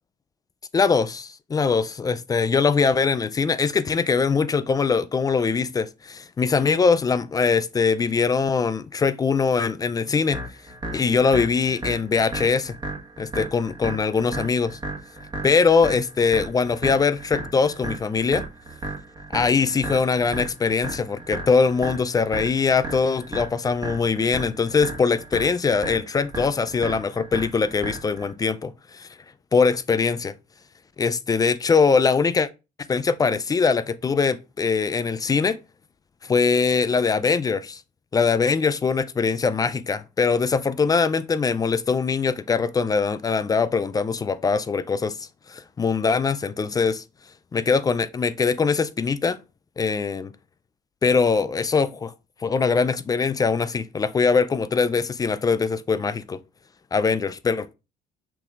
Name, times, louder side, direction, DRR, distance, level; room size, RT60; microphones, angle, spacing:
voice 1, 0.7-10.4 10.9-12.7 13.2-14.8 15.4-18.4 19.3-29.1 29.5-30.3 31.0-32.5 32.9-35.6 36.2-37.8 38.1-45.2 45.5-47.0 47.5-49.4 49.8-50.3 51.0-52.1 52.4-56.4 56.9-57.7, left 5 dB, 20° left, 0.3 m, -22 dB
sound 1, 10.3-28.3, right 2 dB, 25° right, 1.2 m, -34 dB
5.8 x 3.5 x 2.4 m
cardioid pair, 110°, 17 cm